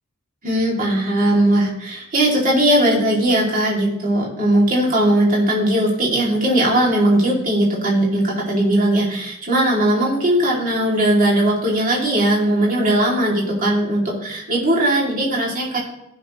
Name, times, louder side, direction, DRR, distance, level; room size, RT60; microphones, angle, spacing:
voice 1, 0.4-15.8, right 1 dB, 45° right, -4 dB, 2.7 m, -18 dB
15.5 x 6.1 x 3.1 m, 0.87 s
head